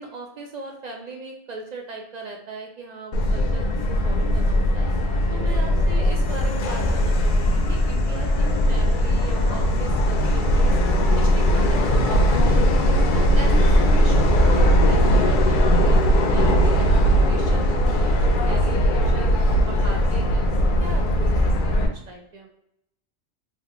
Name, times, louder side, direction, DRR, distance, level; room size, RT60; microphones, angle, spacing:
voice 1, 0.0-4.9 5.3-10.7 11.1-12.7 13.1-19.3 19.6-22.5, right 3 dB, 65° right, 1 dB, 0.4 m, -38 dB
Subway metro underground, 3.1-21.9, equal, 60° left, 0.5 m, -19 dB
3.4 x 2.3 x 2.9 m, 0.80 s
omnidirectional pair, 1.2 m